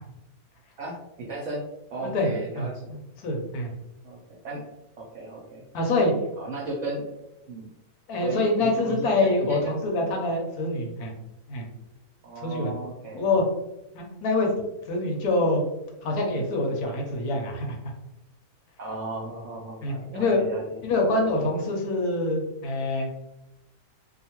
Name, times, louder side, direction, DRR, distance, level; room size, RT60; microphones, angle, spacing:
voice 1, 0.8-1.6 1.9-2.9 4.0-4.2 4.4-4.6 5.0-5.6 6.4-7.1 7.5-7.7 8.2-9.7 12.2-13.3 18.8-20.8, right 2 dB, 65° right, -3 dB, 0.8 m, -35 dB
voice 2, 2.6-3.7 5.7-6.1 8.1-11.1 11.5-11.6 12.4-12.7 13.1-13.4 13.9-14.5 14.9-15.6 16.0-17.8 19.8-20.4 20.8-23.1, left 2 dB, 70° left, 1 dB, 1.1 m, -25 dB
2.7 x 2.3 x 2.9 m, 0.92 s
omnidirectional pair, 1.8 m